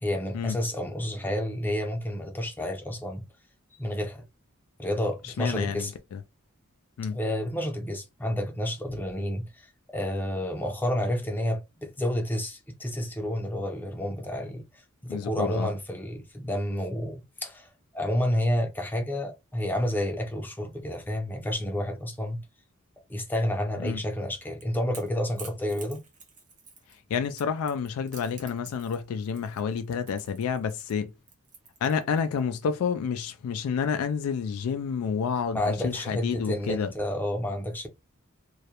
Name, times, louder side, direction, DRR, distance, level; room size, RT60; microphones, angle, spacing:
voice 1, 0.0-3.2 3.8-4.3 4.8-5.9 7.1-14.6 15.0-17.7 17.9-22.4 23.1-26.0 35.5-37.9, left 1 dB, 10° left, 0.5 m, -30 dB
voice 2, 5.2-6.2 7.0-7.2 15.1-15.7 23.8-24.0 27.1-31.1 31.8-36.9, left 6 dB, 85° left, 0.3 m, -29 dB
Crackle / Crack, 24.2-32.4, right 4 dB, 35° right, 0.8 m, -49 dB
2.3 x 2.0 x 2.8 m
head